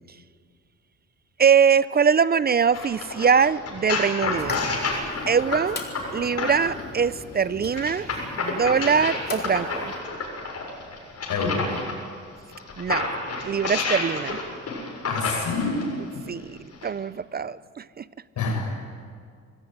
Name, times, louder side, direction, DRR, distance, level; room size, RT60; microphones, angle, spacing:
voice 1, 1.4-4.6 5.3-5.8 6.1-8.1 8.4-9.9 12.8-13.1 13.4-14.4 16.3-18.1, right 6 dB, 30° right, 18 dB, 0.5 m, -22 dB
sound 1, 2.7-6.8 7.7-11.9 12.5-15.9 16.7-16.9, left 4 dB, 55° left, 7.2 m, -29 dB
sound 2, 4.4-10.0, left 3 dB, 35° left, 3.4 m, -38 dB
voice 2, 11.3-11.7 15.1-15.9 16.1-16.3 18.4-18.8, left 3 dB, 75° left, 2 dB, 7.1 m, -27 dB
25.0 x 15.0 x 9.4 m, 2.1 s
cardioid pair, 90°, 30 cm